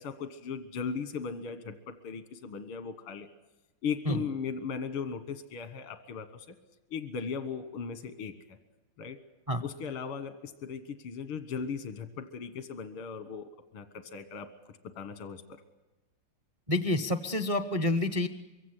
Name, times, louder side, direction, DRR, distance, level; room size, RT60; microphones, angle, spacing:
voice 1, 0.0-3.3 3.8-6.6 6.9-8.3 9.0-9.2 9.6-14.5 14.8-15.6, left 6 dB, 90° left, 10 dB, 2.2 m, -38 dB
voice 2, 16.7-18.3, left 1 dB, 55° right, 9 dB, 0.3 m, -28 dB
23.0 x 17.0 x 9.7 m, 1.1 s
omnidirectional pair, 2.3 m